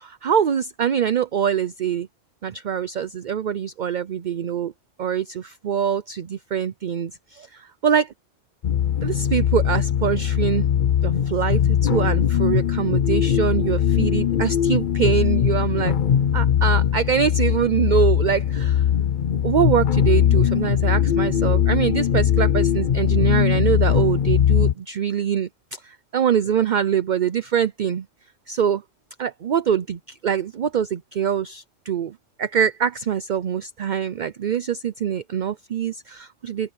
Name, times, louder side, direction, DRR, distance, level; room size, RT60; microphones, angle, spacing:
voice 1, 0.0-2.1 2.4-4.7 5.0-7.5 7.8-8.1 9.0-10.7 11.0-15.9 16.3-18.8 19.4-25.5 25.8-28.1 28.5-28.8 29.2-36.7, right 8 dB, 50° right, 0.6 m, -24 dB
sound 1, 8.6-24.7, left 9 dB, 50° left, 0.7 m, -20 dB
open air
omnidirectional pair, 1.3 m